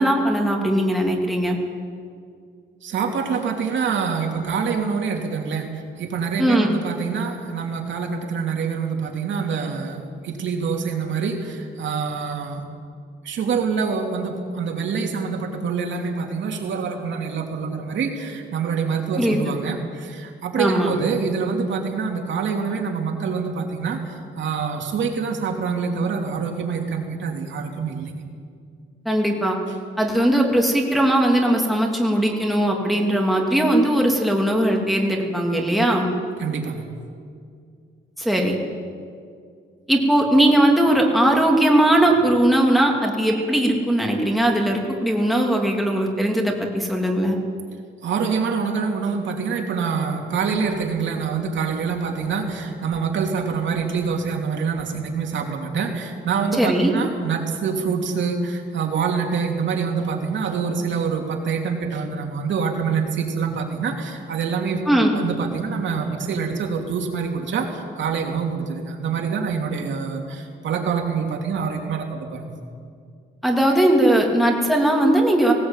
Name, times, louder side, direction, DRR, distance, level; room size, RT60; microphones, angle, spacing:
voice 1, 0.0-1.6 6.4-6.7 19.2-19.4 20.6-20.9 29.0-29.6 30.0-36.1 38.2-38.6 39.9-47.4 56.6-56.9 64.9-65.2 73.4-75.5, right 1 dB, ahead, 0 dB, 2.9 m, -19 dB
voice 2, 2.8-12.6 13.2-28.1 36.4-36.8 48.0-64.8 65.1-72.5, right 5 dB, 65° right, 2 dB, 2.9 m, -26 dB
19.0 x 18.0 x 9.0 m, 2.2 s
cardioid pair, 135°, 20 cm